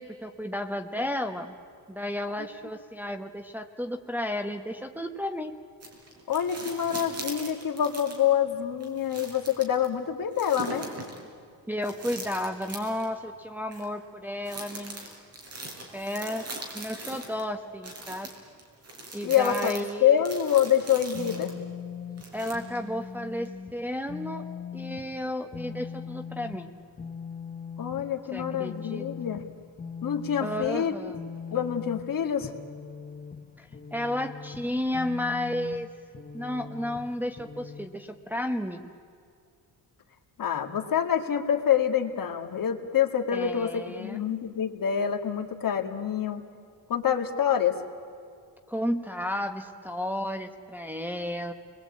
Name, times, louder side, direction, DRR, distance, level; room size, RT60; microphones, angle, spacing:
voice 1, 0.0-1.5 1.9-5.5 11.7-15.1 15.9-16.4 16.7-18.3 19.1-20.2 22.3-24.5 24.7-26.7 28.3-29.1 30.4-31.2 33.6-35.9 36.3-38.9 43.3-44.2 48.7-51.5, left 1 dB, 5° right, 4 dB, 1.1 m, -33 dB
sound 1, 5.8-8.3 8.8-9.9 10.4-11.2 11.8-13.1 13.7-13.8 14.5-17.4 17.8-21.6 22.2-22.9 23.5-23.6, right 2 dB, 35° right, 4.9 m, -41 dB
voice 2, 6.3-10.9 19.2-21.5 27.8-29.4 30.0-30.9 31.5-32.5 40.4-46.4 46.9-47.8, left 9 dB, 50° left, 5 dB, 2.1 m, -26 dB
sound 2, 21.1-37.9, left 6 dB, 20° left, 1.0 m, -40 dB
30.0 x 21.5 x 8.6 m, 2.3 s
wide cardioid pair, 160°, 42 cm